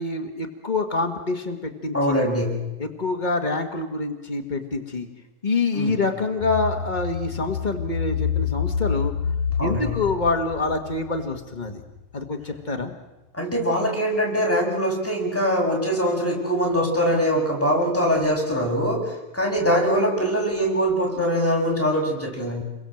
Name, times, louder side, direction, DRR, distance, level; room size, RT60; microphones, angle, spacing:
voice 1, 0.0-1.6 1.8-2.3 2.8-5.1 5.4-9.1 9.6-11.8 12.1-12.9, left 3 dB, 80° left, 4 dB, 0.4 m, -26 dB
voice 2, 1.9-2.6 5.7-6.0 9.6-10.0 13.3-22.6, equal, 5° left, -2 dB, 6.9 m, -23 dB
sound 1, 6.4-12.0 12.4-12.5, left 7 dB, 50° left, 4.1 m, -28 dB
29.5 x 22.5 x 7.8 m, 1.1 s
omnidirectional pair, 3.9 m